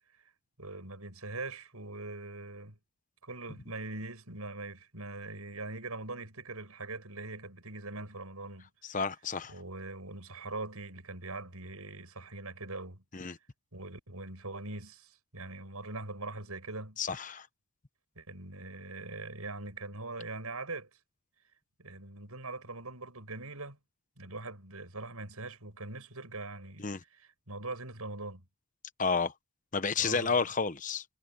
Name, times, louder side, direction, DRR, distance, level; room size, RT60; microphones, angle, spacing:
voice 1, 0.6-2.8 3.2-8.7 9.5-13.0 13.7-17.0 18.2-20.9 21.8-23.8 24.2-28.4 30.0-30.3, right 2 dB, 85° right, 7.4 m, -42 dB
voice 2, 8.8-9.5 13.1-13.4 17.0-17.5 26.8-27.0 29.0-29.3 29.7-31.0, left 5 dB, 35° left, 0.9 m, -31 dB
head